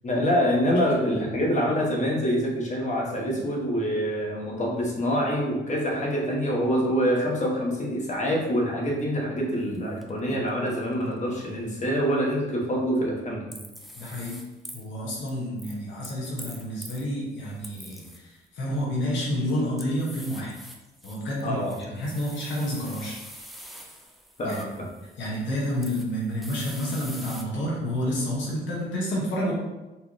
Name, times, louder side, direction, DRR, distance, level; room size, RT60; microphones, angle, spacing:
voice 1, 0.0-13.5 21.4-21.8 24.4-24.7, equal, 35° left, -1 dB, 1.2 m, -26 dB
sound 1, 9.7-9.8 10.0-11.0 13.5-14.9 15.3-17.0 17.5-18.4 19.3-27.4, equal, ahead, 0.5 m, -45 dB
voice 2, 14.0-14.4 14.7-20.5 21.0-21.6 21.9-23.2 24.4-24.6 25.2-29.5, equal, 75° left, -5 dB, 1.3 m, -29 dB
4.2 x 3.4 x 3.1 m, 1.1 s
cardioid pair, 90°, 20 cm